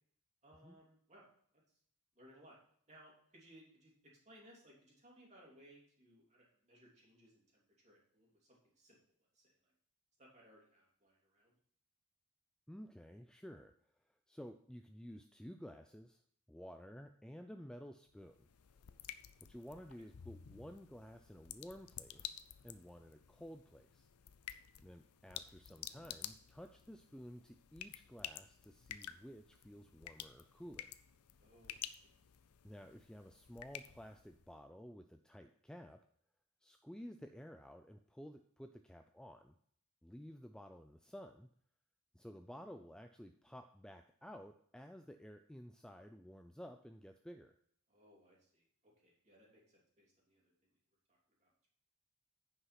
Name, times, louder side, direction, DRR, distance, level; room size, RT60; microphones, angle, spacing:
voice 1, 0.4-1.3 1.5-1.8 2.1-2.6 2.9-9.0 9.3-9.7 10.2-11.5 31.4-32.1 47.9-50.8 51.1-51.7, equal, 30° right, -3 dB, 3.0 m, -64 dB
voice 2, 12.7-16.2 16.5-18.5 19.5-22.4 22.6-24.1 24.8-31.0 32.6-36.0 36.6-39.6 40.0-41.5 42.1-47.6, equal, 5° left, 6 dB, 0.3 m, -53 dB
sound 1, 18.1-34.5, left 11 dB, 80° left, 0.6 m, -52 dB
9.7 x 5.7 x 5.8 m, 0.64 s
head